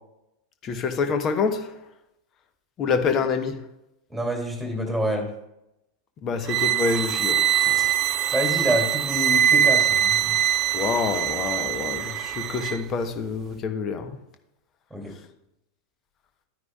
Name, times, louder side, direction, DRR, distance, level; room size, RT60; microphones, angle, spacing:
voice 1, 0.6-1.7 2.8-3.6 6.2-7.8 10.7-14.2, left 5 dB, 30° left, 7 dB, 1.0 m, -26 dB
voice 2, 4.1-5.3 8.3-10.4 14.9-15.1, equal, ahead, 1 dB, 2.6 m, -27 dB
sound 1, 6.5-12.8, right 11 dB, 30° right, 0.4 m, -23 dB
11.5 x 9.5 x 2.4 m, 0.85 s
figure-of-eight pair, 90°, 0 cm